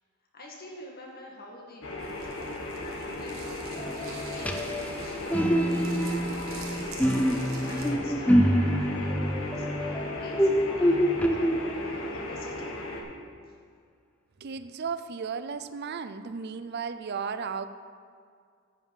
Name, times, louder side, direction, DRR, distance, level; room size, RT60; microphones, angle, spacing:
voice 1, 0.3-2.5 2.8-3.6 4.3-11.0 11.3-12.8, left 1 dB, 45° left, -2 dB, 1.9 m, -47 dB
sound 1, 1.8-13.0, left 1 dB, 65° left, 1.5 m, -36 dB
sound 2, 2.0-7.9, right 4 dB, 70° right, 1.3 m, -47 dB
sound 3, 3.8-12.1, equal, 5° left, 0.4 m, -26 dB
voice 2, 14.4-17.7, right 5 dB, 50° right, 12 dB, 0.5 m, -34 dB
9.5 x 5.6 x 7.6 m, 2.2 s
head